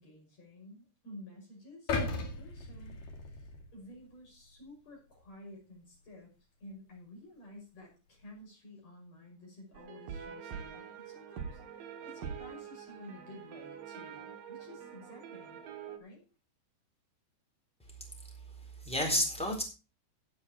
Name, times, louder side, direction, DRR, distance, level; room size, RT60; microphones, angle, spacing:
voice 1, 0.0-6.3 6.6-15.6 16.0-16.2, left 1 dB, 35° left, 0 dB, 6.7 m, -52 dB
sound 1, 1.9-4.1 4.5-4.7, left 3 dB, 55° left, 3.6 m, -36 dB
sound 2, 9.7-16.0, right 7 dB, 60° right, 2.6 m, -45 dB
voice 2, 17.9-19.6, equal, ahead, 1 dB, 3.5 m, -33 dB
15.0 x 8.4 x 4.3 m, 0.32 s
omnidirectional pair, 5.2 m